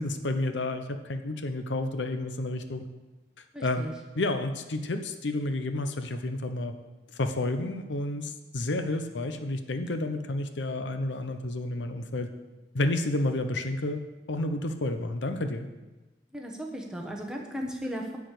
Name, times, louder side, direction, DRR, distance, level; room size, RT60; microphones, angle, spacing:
voice 1, 0.0-2.8 3.6-3.9 4.1-6.7 7.2-12.3 12.7-14.0 14.3-15.7, left 2 dB, 85° left, 8 dB, 0.8 m, -30 dB
voice 2, 3.5-3.9 16.3-18.2, equal, 5° right, -1 dB, 1.2 m, -36 dB
10.0 x 4.9 x 8.1 m, 1.2 s
head